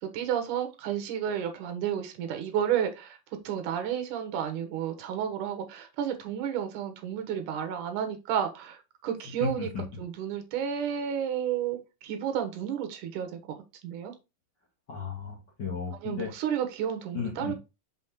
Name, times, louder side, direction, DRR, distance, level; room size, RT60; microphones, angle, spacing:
voice 1, 0.0-3.2 3.4-9.7 10.0-14.1 16.0-17.5, right 9 dB, 70° right, 2.6 m, -31 dB
voice 2, 9.4-9.8 14.9-16.3 17.1-17.5, left 5 dB, 40° left, 2.0 m, -34 dB
6.2 x 5.2 x 3.6 m
omnidirectional pair, 3.9 m